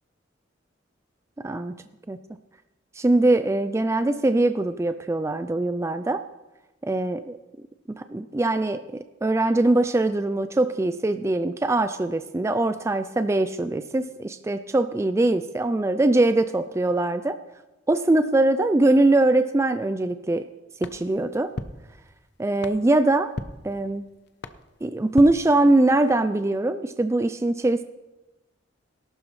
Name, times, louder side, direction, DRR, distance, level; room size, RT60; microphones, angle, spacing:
voice 1, 1.4-1.7 2.1-2.2 3.0-6.2 6.8-7.4 7.9-17.4 17.9-20.5 20.8-21.5 22.4-23.3 23.6-24.1 24.8-27.8, right 2 dB, 15° right, 10 dB, 0.3 m, -22 dB
sound 1, 20.8-26.1, left 2 dB, 60° left, 0.6 m, -40 dB
18.0 x 12.0 x 3.2 m, 1.1 s
head